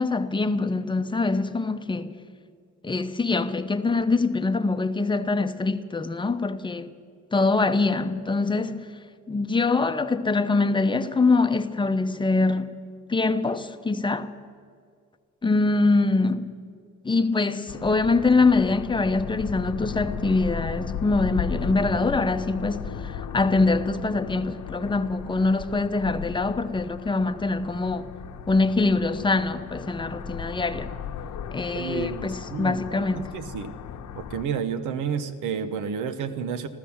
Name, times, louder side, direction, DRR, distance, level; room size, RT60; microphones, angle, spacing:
voice 1, 0.0-2.1 2.8-6.9 7.3-8.9 9.3-12.8 13.1-14.3 15.4-16.5 17.0-28.1 28.5-30.9 31.5-33.3, left 3 dB, 15° left, 0.7 m, -24 dB
sound 1, 17.7-34.4, left 7 dB, 75° left, 1.0 m, -36 dB
voice 2, 31.7-33.7 34.1-36.7, right 7 dB, 85° right, 1.0 m, -31 dB
14.5 x 13.5 x 7.1 m
cardioid pair, 90°, 30 cm